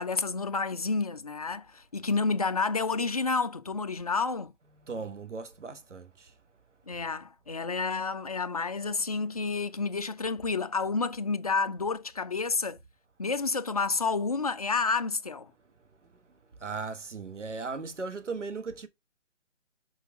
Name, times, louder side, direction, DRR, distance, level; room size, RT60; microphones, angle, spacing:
voice 1, 0.0-4.5 6.9-12.8 13.2-15.5, left 4 dB, 35° left, 0.4 m, -30 dB
voice 2, 4.8-6.3 16.6-18.9, right 4 dB, 75° right, 1.5 m, -37 dB
6.5 x 4.6 x 3.6 m
figure-of-eight pair, 145°, 36 cm